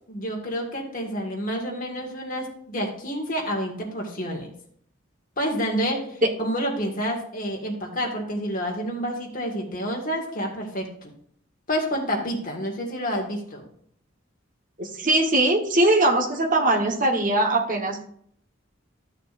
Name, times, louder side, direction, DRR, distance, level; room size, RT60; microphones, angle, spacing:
voice 1, 0.1-4.5 5.4-11.1 11.7-13.7, equal, 45° left, 0 dB, 1.8 m, -29 dB
voice 2, 14.8-18.0, right 1 dB, 40° right, 2 dB, 1.2 m, -21 dB
13.0 x 6.6 x 2.6 m, 0.64 s
head